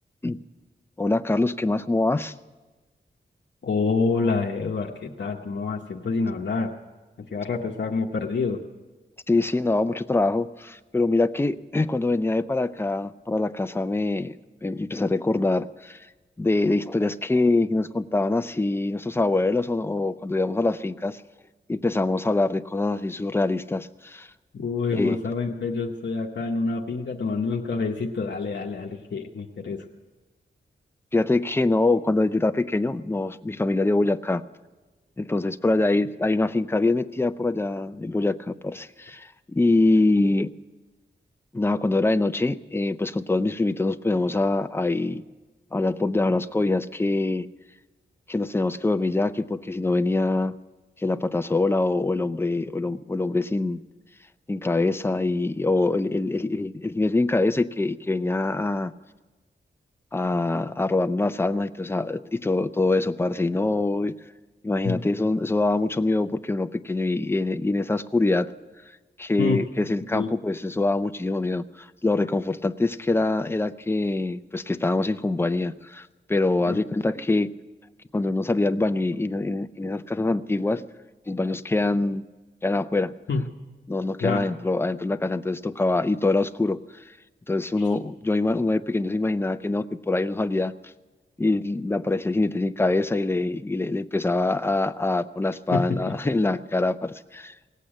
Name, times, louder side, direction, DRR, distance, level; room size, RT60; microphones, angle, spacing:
voice 1, 1.0-2.3 9.3-14.3 14.6-16.1 16.4-21.2 21.7-24.3 24.9-25.2 31.1-34.4 35.2-40.5 41.5-45.2 45.7-47.5 48.3-50.5 51.0-53.8 54.5-58.9 60.1-64.2 64.6-68.5 69.2-77.5 78.1-80.9 81.3-82.2 82.6-83.1 83.9-86.8 87.5-90.9 91.4-97.5, left 2 dB, 10° left, 11 dB, 0.5 m, -24 dB
voice 2, 3.6-6.7 7.3-8.6 24.5-29.8 64.8-65.0 69.4-69.6 70.1-70.3 76.7-76.8 83.3-83.4 84.2-84.5 87.8-87.9 95.7-96.1, left 4 dB, 70° left, 0 dB, 1.0 m, -27 dB
18.0 x 8.4 x 8.7 m, 1.2 s
wide cardioid pair, 120°, 19 cm